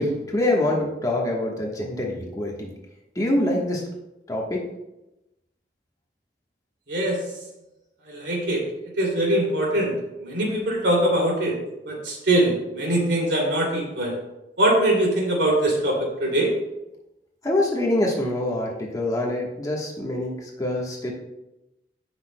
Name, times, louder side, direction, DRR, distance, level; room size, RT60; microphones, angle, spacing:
voice 1, 0.0-2.7 3.1-3.8 4.3-4.6 17.4-21.1, left 1 dB, 20° left, -2 dB, 1.2 m, -25 dB
voice 2, 6.9-7.2 8.1-8.6 9.0-9.9 10.2-11.6 11.9-14.2 14.6-16.5, right 1 dB, 80° right, -2 dB, 2.7 m, -22 dB
16.0 x 6.0 x 2.2 m, 0.95 s
head